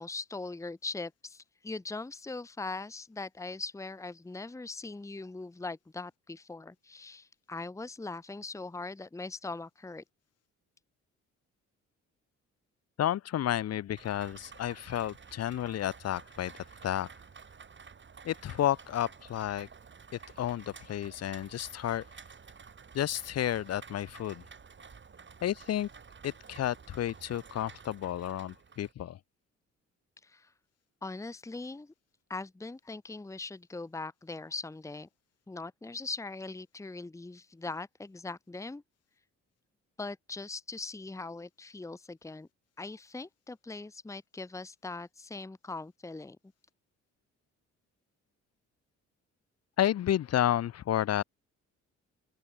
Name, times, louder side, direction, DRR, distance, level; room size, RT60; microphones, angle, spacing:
voice 1, 0.0-10.0 30.2-30.5 31.0-31.9 32.3-35.1 35.5-38.8 40.0-42.5 42.8-46.4, left 3 dB, 10° left, 1.0 m, -41 dB
voice 2, 13.0-17.1 18.2-19.7 20.1-22.1 22.9-24.4 25.4-25.9 26.2-29.2 49.8-51.2, left 11 dB, 55° left, 0.8 m, -31 dB
Rain, 14.0-28.9, right 5 dB, 40° right, 6.8 m, -52 dB
open air
cardioid pair, 90°, 30 cm